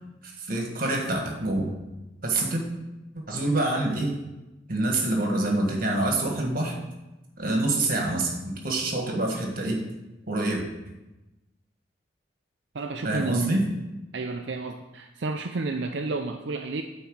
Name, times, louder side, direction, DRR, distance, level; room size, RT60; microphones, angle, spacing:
voice 1, 0.2-1.7 2.2-2.6 3.3-4.1 4.7-6.7 7.4-9.8 10.3-10.6 13.0-13.6, right 2 dB, 50° right, 1 dB, 1.6 m, -26 dB
voice 2, 12.7-13.6 14.1-16.8, right 3 dB, 70° right, 4 dB, 0.5 m, -31 dB
9.2 x 4.2 x 6.3 m, 1.0 s
head